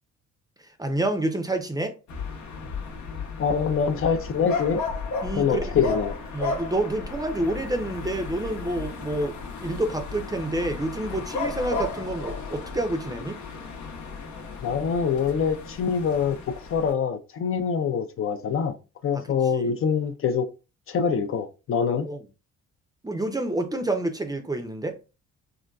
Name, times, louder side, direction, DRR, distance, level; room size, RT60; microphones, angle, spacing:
voice 1, 0.8-1.9 5.2-5.7 6.3-13.4 19.1-19.8 21.9-22.2 23.0-25.0, right 1 dB, 15° right, 0.5 m, -28 dB
sound 1, 2.1-16.9, left 4 dB, 75° left, 0.8 m, -34 dB
voice 2, 3.4-4.8 5.3-6.1 14.6-16.4 16.7-18.8 19.0-20.5 20.9-22.1, left 6 dB, 45° left, 0.4 m, -24 dB
3.7 x 2.2 x 2.3 m
cardioid pair, 90°, 30 cm